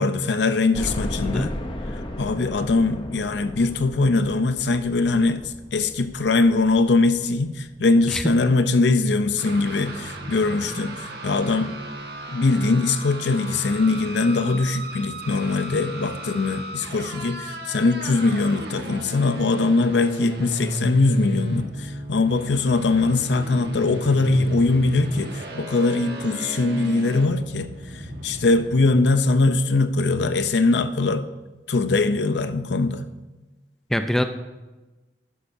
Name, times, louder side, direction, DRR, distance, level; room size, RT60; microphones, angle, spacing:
voice 1, 0.0-1.5 1.9-5.4 5.7-11.7 12.3-31.3 31.7-33.1, left 3 dB, 80° left, 11 dB, 0.6 m, -21 dB
sound 1, 0.7-9.6 10.1-10.2 10.6-10.7 11.9-12.0 12.3-12.4, left 1 dB, 30° left, 0.7 m, -36 dB
voice 2, 1.2-1.5 8.1-8.2 33.9-34.2, equal, ahead, 8 dB, 0.4 m, -24 dB
sound 2, 9.4-28.9, right 1 dB, 65° right, 1.3 m, -35 dB
11.5 x 11.5 x 2.7 m, 1.2 s
head